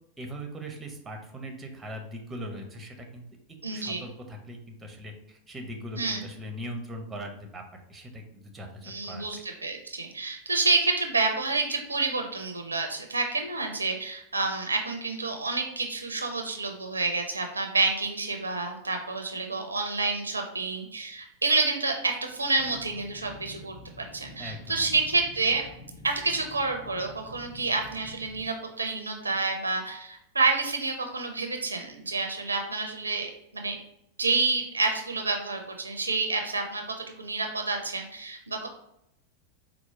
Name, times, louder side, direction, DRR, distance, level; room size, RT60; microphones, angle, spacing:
voice 1, 0.2-3.2 3.7-9.4 24.4-24.9 32.4-32.5, equal, 15° right, 3 dB, 0.6 m, -40 dB
voice 2, 3.6-4.0 6.0-6.3 8.8-25.7 26.0-33.7 34.2-38.7, right 3 dB, 80° right, 4 dB, 0.4 m, -29 dB
sound 1, 22.5-28.5, left 2 dB, 65° left, 1.2 m, -48 dB
4.4 x 2.0 x 3.4 m, 0.77 s
figure-of-eight pair, 90°, 0 cm